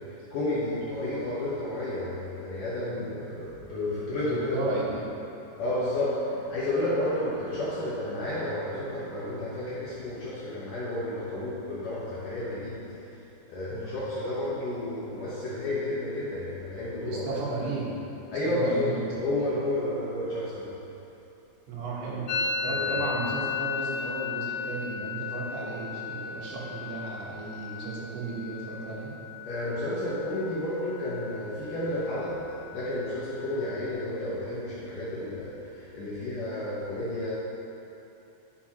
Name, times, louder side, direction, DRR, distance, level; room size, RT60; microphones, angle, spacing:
voice 1, 0.1-4.6 5.6-12.9 13.5-17.3 18.3-18.9 19.2-20.7 22.7-23.0 29.5-37.3, left 1 dB, 65° left, -9 dB, 2.2 m, -31 dB
voice 2, 4.3-5.1 13.7-14.0 17.0-18.0 18.4-19.6 21.7-29.1, right 3 dB, 75° right, -5 dB, 3.4 m, -34 dB
Musical instrument, 22.3-29.9 30.2-30.8 31.0-31.6 31.9-33.9, left 6 dB, 85° left, 2.8 m, -35 dB
11.5 x 6.1 x 2.9 m, 2.9 s
omnidirectional pair, 5.0 m